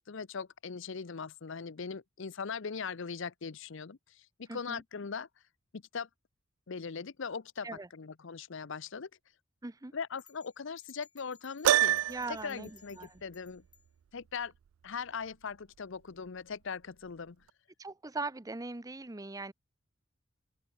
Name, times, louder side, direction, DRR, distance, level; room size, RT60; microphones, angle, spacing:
voice 1, 0.0-5.3 5.7-6.1 6.7-9.1 9.9-12.0 12.4-13.6 14.1-14.5 14.8-17.4, left 5 dB, 65° left, 0.7 m, -40 dB
voice 2, 4.5-4.8 7.6-7.9 9.6-9.9 12.1-13.2 17.8-19.5, right 3 dB, 15° right, 0.7 m, -40 dB
sound 1, 10.2-13.9, left 7 dB, 25° left, 4.9 m, -61 dB
Piano, 11.6-12.5, right 12 dB, 85° right, 0.3 m, -26 dB
open air
head